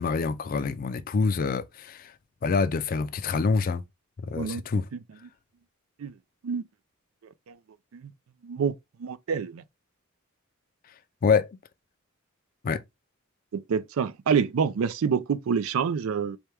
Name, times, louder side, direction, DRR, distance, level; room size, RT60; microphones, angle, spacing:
voice 1, 0.0-2.1 2.4-3.8 4.3-4.9 11.2-11.6 12.6-12.8, left 5 dB, 45° left, 0.3 m, -26 dB
voice 2, 4.4-5.0 6.0-6.1 6.4-6.6 7.5-7.6 7.9-8.1 8.4-8.7 9.0-9.6 13.5-16.4, right 6 dB, 90° right, 0.4 m, -27 dB
4.4 x 2.2 x 3.4 m
head